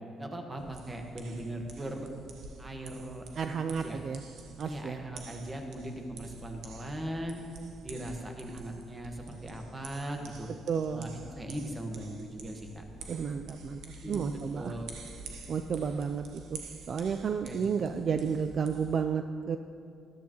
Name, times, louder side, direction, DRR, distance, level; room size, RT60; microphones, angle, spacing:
voice 1, 0.2-2.1 2.6-4.0 4.6-7.5 7.8-10.5 10.9-12.8 14.0-14.9 17.4-17.7, right 1 dB, 20° right, 3 dB, 1.4 m, -39 dB
sound 1, 0.6-19.0, right 3 dB, 80° right, 1.0 m, -49 dB
voice 2, 3.4-4.2 4.6-5.0 10.7-11.1 13.1-13.8 14.1-14.7 15.5-16.6 16.9-19.6, right 6 dB, 55° right, 8 dB, 0.4 m, -32 dB
13.0 x 12.0 x 3.1 m, 2.4 s
cardioid pair, 90°, 0 cm